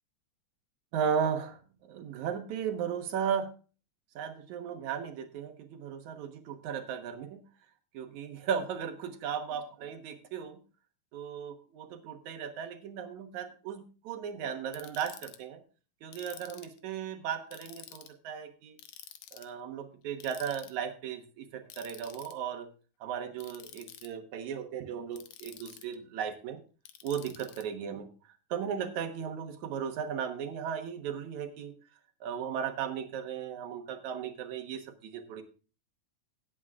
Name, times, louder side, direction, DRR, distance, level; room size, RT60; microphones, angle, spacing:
voice 1, 0.9-3.5 4.2-7.4 7.9-10.6 11.1-15.6 16.0-18.8 19.3-22.7 23.0-26.6 27.0-28.1 28.5-31.7 32.2-35.4, right 7 dB, 75° right, 5 dB, 2.6 m, -36 dB
Ratchet pawl, 14.7-15.4 16.1-16.8 17.5-18.1 18.8-19.5 20.2-20.7 21.7-22.3 23.4-24.1 25.1-26.0 26.9-27.6, left 11 dB, 80° left, 2.3 m, -49 dB
18.5 x 8.2 x 2.4 m, 0.36 s
omnidirectional pair, 3.4 m